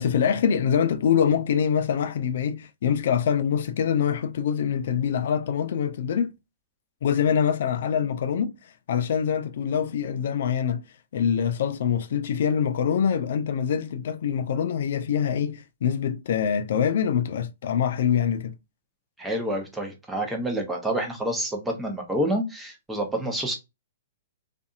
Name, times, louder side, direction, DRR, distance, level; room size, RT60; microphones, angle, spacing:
voice 1, 0.0-6.3 7.0-8.5 8.9-10.8 11.1-18.5, left 8 dB, 65° left, 0.4 m, -24 dB
voice 2, 19.2-23.6, right 1 dB, 10° right, 0.8 m, -28 dB
2.6 x 2.5 x 2.4 m
hypercardioid pair, 125°, 0 cm